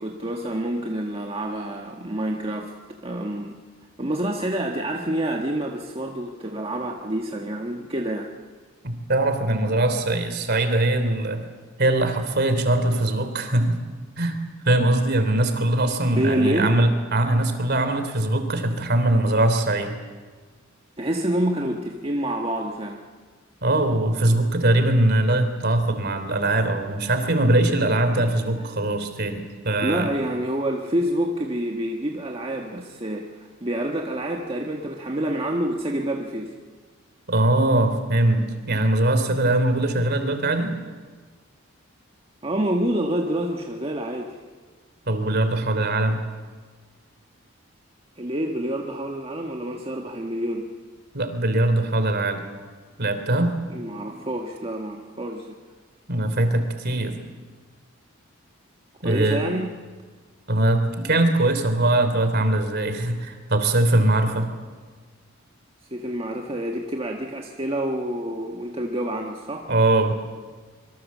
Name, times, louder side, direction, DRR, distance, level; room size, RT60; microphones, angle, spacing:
voice 1, 0.0-2.7 3.0-3.6 4.0-8.3 16.2-16.8 21.0-23.0 28.6-28.7 29.8-36.5 42.4-44.3 48.2-50.7 53.7-55.6 59.0-59.7 65.9-69.7, right 1 dB, 25° right, 0 dB, 1.5 m, -27 dB
voice 2, 8.8-11.4 11.8-13.8 14.2-14.4 14.6-20.0 23.6-30.1 37.3-40.8 45.1-46.2 51.1-52.4 53.0-53.5 56.1-57.2 59.0-59.4 60.5-64.5 69.7-70.1, right 1 dB, 50° right, 8 dB, 3.1 m, -21 dB
25.5 x 24.0 x 7.3 m, 1.5 s
head